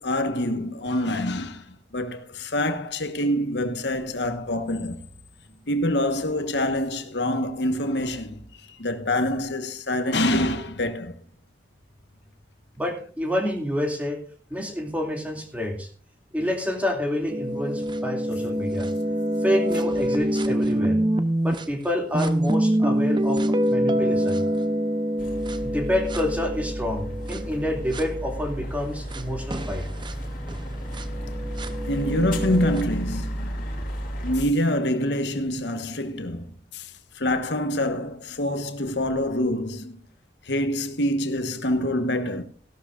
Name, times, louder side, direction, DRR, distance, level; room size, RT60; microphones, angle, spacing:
voice 1, 0.0-5.0 5.7-11.2 24.4-24.6 31.9-33.7 34.2-40.0 40.4-42.4, left 1 dB, 70° left, 1.4 m, -26 dB
voice 2, 12.8-14.2 14.5-15.9 16.3-18.9 19.4-21.0 21.4-23.4 23.7-24.4 25.6-29.8, left 1 dB, 10° right, 2.6 m, -28 dB
sound 1, 17.3-21.6 22.1-28.1 29.1-29.2 29.5-32.8, right 1 dB, 25° right, 0.8 m, -25 dB
sound 2, 25.2-34.4, equal, 50° left, 2.9 m, -33 dB
16.5 x 12.5 x 2.5 m
head